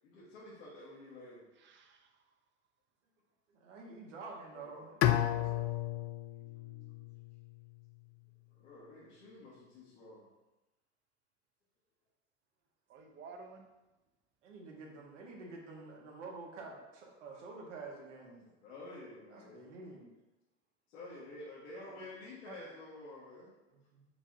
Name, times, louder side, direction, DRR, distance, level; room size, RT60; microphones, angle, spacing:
voice 1, 0.0-1.5 4.5-5.1 8.5-10.3 18.4-19.6 20.9-23.5, left 2 dB, 70° left, -8 dB, 1.4 m, -50 dB
voice 2, 1.6-2.1 6.4-7.1 12.9-13.7 21.8-22.0 22.5-22.8, right 4 dB, 30° right, 4 dB, 0.6 m, -54 dB
voice 3, 3.5-6.0 14.4-18.5 19.3-20.1 23.7-24.1, right 3 dB, 80° right, -1 dB, 1.2 m, -49 dB
Bowed string instrument, 5.0-8.0, left 13 dB, 45° left, 0.4 m, -33 dB
5.4 x 3.6 x 2.6 m, 1.0 s
hypercardioid pair, 90°, 36 cm